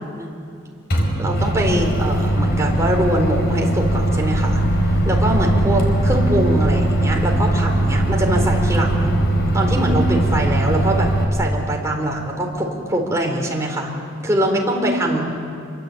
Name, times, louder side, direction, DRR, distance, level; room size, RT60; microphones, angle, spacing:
Microwave oven, 0.9-11.2, right 1 dB, 60° left, 4.8 m, -19 dB
voice 1, 1.2-4.6 5.0-9.1 9.5-13.9 14.2-15.3, right 1 dB, 15° right, 0 dB, 4.3 m, -22 dB
27.5 x 23.0 x 8.8 m, 2.5 s
head